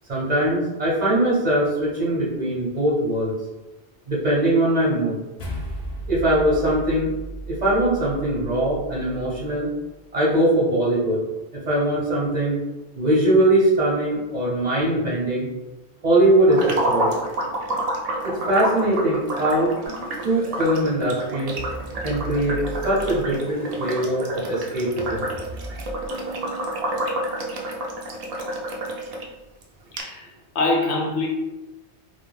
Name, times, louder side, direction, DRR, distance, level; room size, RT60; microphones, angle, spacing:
voice 1, 0.1-3.3 4.1-5.2 6.1-7.1 7.5-9.7 10.1-11.2 11.5-12.6 13.0-15.5 16.0-17.1 18.2-19.7 20.2-21.6 22.0-25.3, right 1 dB, 45° right, -6 dB, 0.7 m, -21 dB
sound 1, 5.4-9.9, right 1 dB, 50° left, 0.5 m, -35 dB
sound 2, 16.5-29.3 29.6-29.7 30.0-30.1, right 1 dB, 60° right, 0.4 m, -29 dB
sound 3, 19.8-20.7 21.6-24.1 25.0-26.7, right 1 dB, 10° right, 0.5 m, -37 dB
voice 2, 29.9-30.3 30.5-31.3, left 2 dB, 75° left, -1 dB, 0.9 m, -24 dB
2.3 x 2.1 x 3.2 m, 1.0 s
omnidirectional pair, 1.1 m